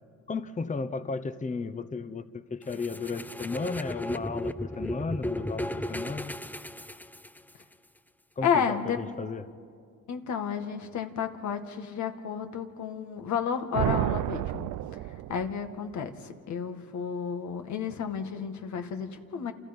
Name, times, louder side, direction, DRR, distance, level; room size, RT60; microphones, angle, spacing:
voice 1, 0.3-6.3 8.4-9.5, left 4 dB, 25° left, 12 dB, 1.0 m, -34 dB
insane-dj-efx, 2.7-7.6, left 1 dB, 5° left, 0.6 m, -35 dB
voice 2, 8.4-9.0 10.1-14.7 15.3-19.5, left 7 dB, 70° left, 6 dB, 2.0 m, -31 dB
sound 1, 13.7-15.7, right 15 dB, 85° right, 0.5 m, -30 dB
28.5 x 28.5 x 5.4 m, 2.2 s
cardioid pair, 90°, 30 cm